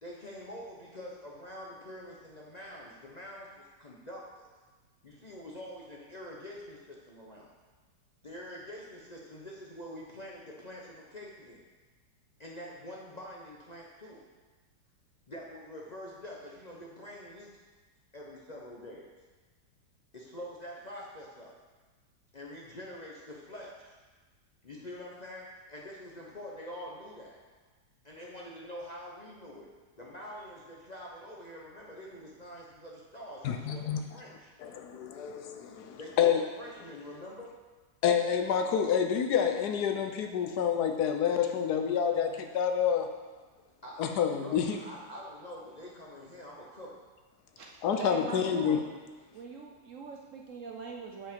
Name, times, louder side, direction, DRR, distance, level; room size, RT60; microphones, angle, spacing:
voice 1, 0.0-4.5 5.0-7.5 8.2-11.6 12.4-14.3 15.3-17.5 18.1-19.1 20.1-21.6 22.3-24.0 24.6-27.4 28.0-29.7 30.0-33.8 34.1-34.5 36.0-36.3 36.6-37.6 43.8-44.0 44.4-47.1, left 1 dB, 40° left, -3 dB, 0.6 m, -45 dB
voice 2, 33.4-34.0 34.6-36.4 38.0-43.1 44.0-44.8 47.8-48.8, left 8 dB, 70° left, 5 dB, 1.2 m, -28 dB
voice 3, 47.6-48.8 49.3-51.3, right 5 dB, 60° right, 0 dB, 0.8 m, -42 dB
7.3 x 5.5 x 5.2 m, 1.3 s
omnidirectional pair, 1.8 m